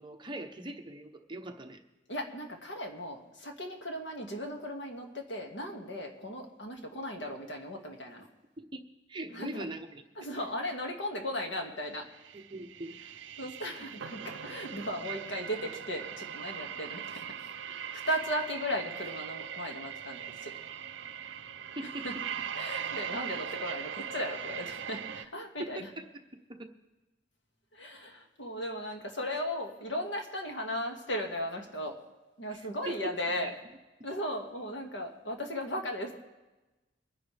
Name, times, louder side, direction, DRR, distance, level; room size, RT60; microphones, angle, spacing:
voice 1, 0.0-1.8 8.6-8.8 9.1-10.0 10.4-10.5 12.5-13.0 21.2-21.4 21.8-22.1 25.6-25.7 26.0-26.1 26.6-26.7 32.5-32.6 32.9-33.1 33.4-33.5, right 1 dB, 25° right, 5 dB, 0.9 m, -40 dB
voice 2, 2.1-8.3 9.3-9.6 10.2-12.1 13.4-17.3 17.7-20.5 21.8-22.1 22.5-25.9 27.7-32.0 32.4-33.5 34.0-36.2, equal, 85° left, 2 dB, 2.0 m, -36 dB
sound 1, 12.1-25.3, right 8 dB, 80° right, 0.5 m, -40 dB
23.0 x 10.5 x 3.4 m, 1.1 s
head